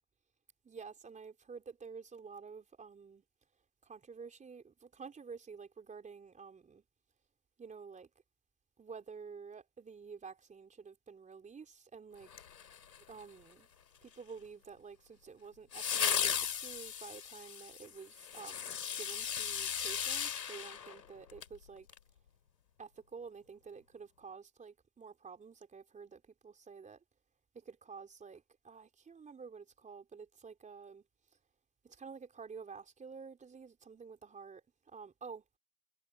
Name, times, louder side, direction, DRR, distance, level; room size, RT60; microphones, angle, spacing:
voice 1, 0.6-3.2 3.8-6.8 7.6-8.1 8.8-12.3 13.1-13.7 14.0-21.9 22.8-27.0 27.5-31.0 31.8-34.6 34.9-35.4, right 5 dB, 15° right, 4.2 m, -50 dB
sound 1, 12.3-13.2 15.7-21.5 21.9-22.0, left 8 dB, 75° left, 4.2 m, -36 dB
figure-of-eight pair, 100°, 50 cm